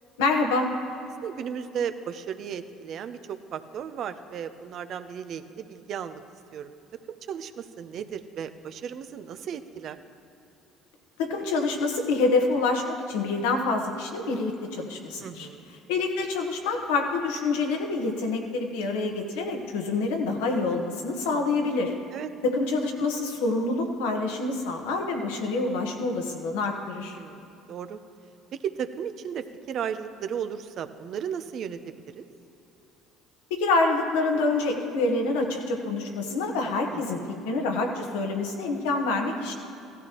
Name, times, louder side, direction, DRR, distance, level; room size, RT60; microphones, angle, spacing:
voice 1, 0.2-0.7 11.2-15.5 15.9-21.9 22.4-27.2 33.5-37.2 37.4-39.5, left 3 dB, 80° left, 3 dB, 1.3 m, -26 dB
voice 2, 1.2-6.2 6.5-6.8 7.1-10.0 15.2-15.6 22.1-22.3 27.0-28.0 28.5-32.2 36.9-37.3, right 8 dB, 55° right, 10 dB, 0.6 m, -35 dB
15.5 x 13.5 x 3.0 m, 2.9 s
hypercardioid pair, 70°, 0 cm